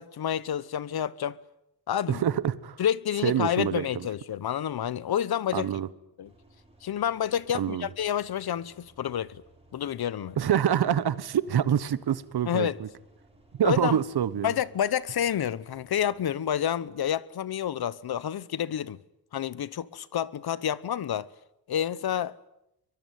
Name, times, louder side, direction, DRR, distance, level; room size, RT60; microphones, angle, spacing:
voice 1, 0.0-1.4 1.9-2.2 2.8-5.7 6.2-6.3 6.8-9.4 9.7-10.4 12.5-12.8 13.6-14.0 14.4-19.0 19.3-21.3 21.7-22.3, left 9 dB, 70° left, 1.1 m, -29 dB
voice 2, 2.1-2.8 3.2-4.1 5.5-5.9 7.5-7.9 10.4-12.9 13.6-14.5, right 9 dB, 75° right, 1.4 m, -26 dB
sound 1, 6.2-16.3, right 2 dB, 15° right, 7.1 m, -59 dB
23.5 x 23.0 x 9.3 m
wide cardioid pair, 120°, 39 cm